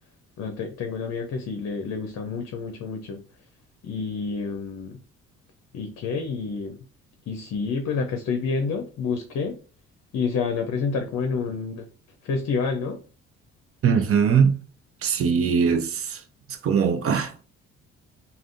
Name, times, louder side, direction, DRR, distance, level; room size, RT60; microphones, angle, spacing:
voice 1, 0.4-3.2 3.8-5.0 5.7-6.8 7.3-9.6 10.1-11.8 12.2-13.0, left 5 dB, 50° left, 0.6 m, -28 dB
voice 2, 13.8-14.6 15.0-16.2 16.6-17.4, right 6 dB, 45° right, 0.6 m, -21 dB
3.4 x 2.3 x 2.6 m
hypercardioid pair, 50°, 33 cm